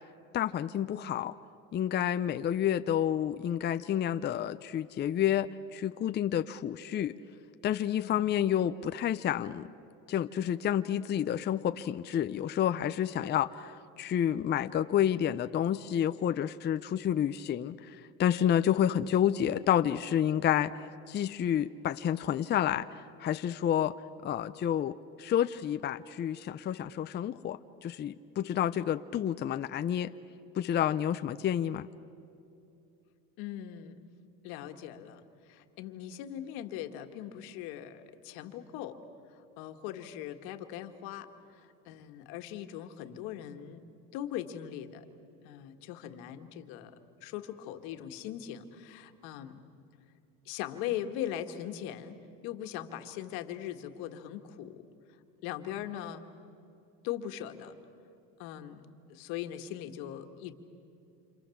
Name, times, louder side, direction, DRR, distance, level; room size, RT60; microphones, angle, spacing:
voice 1, 0.3-1.3 1.7-7.1 7.6-9.7 10.1-17.7 18.2-20.7 21.1-22.9 23.2-23.9 24.2-30.1 30.6-31.9, left 10 dB, 30° left, 10 dB, 0.6 m, -29 dB
voice 2, 33.4-34.0 34.4-39.0 39.3-43.8 44.1-45.1 45.4-46.9 47.2-49.6 50.5-52.2 52.4-54.8 55.4-56.2 57.0-57.7 58.4-58.8 59.1-60.5, left 11 dB, 80° left, 6 dB, 1.8 m, -40 dB
28.5 x 27.0 x 7.2 m, 2.7 s
cardioid pair, 125°, 36 cm